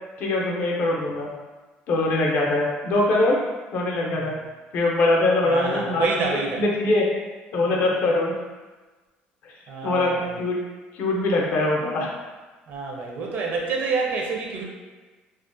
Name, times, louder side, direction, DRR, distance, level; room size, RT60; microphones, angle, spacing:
voice 1, 0.2-1.3 1.9-3.4 3.7-4.4 4.7-6.3 6.6-7.1 7.5-8.4 9.8-10.6 10.9-12.1, left 2 dB, 60° left, -2 dB, 0.5 m, -22 dB
voice 2, 5.4-6.6 9.7-10.4 12.7-14.6, right 4 dB, 55° right, -1 dB, 0.5 m, -28 dB
2.4 x 2.1 x 2.5 m, 1.3 s
cardioid pair, 135°, 4 cm